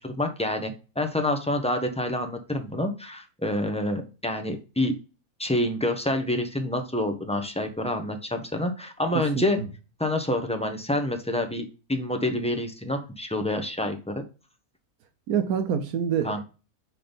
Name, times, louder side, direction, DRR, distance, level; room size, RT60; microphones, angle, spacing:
voice 1, 0.0-4.9 5.4-9.6 10.0-14.2 16.2-16.4, left 1 dB, 5° left, 5 dB, 0.5 m, -27 dB
voice 2, 9.4-9.7 15.3-16.4, right 8 dB, 85° right, 6 dB, 1.3 m, -26 dB
5.8 x 3.8 x 5.1 m, 0.33 s
omnidirectional pair, 1.5 m